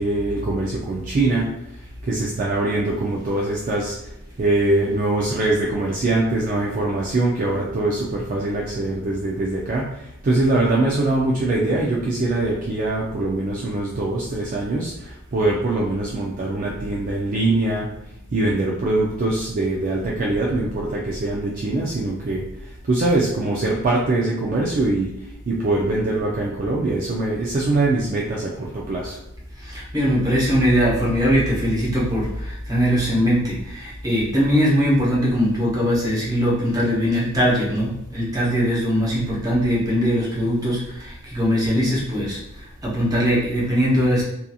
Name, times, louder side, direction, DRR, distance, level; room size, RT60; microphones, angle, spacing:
voice 1, 0.0-1.8 2.0-4.1 4.4-17.9 18.3-25.1 25.5-29.2, right 2 dB, 40° right, -3 dB, 0.3 m, -23 dB
voice 2, 29.6-42.4 42.8-44.2, equal, 15° right, -6 dB, 0.8 m, -21 dB
2.8 x 2.5 x 2.3 m, 0.81 s
head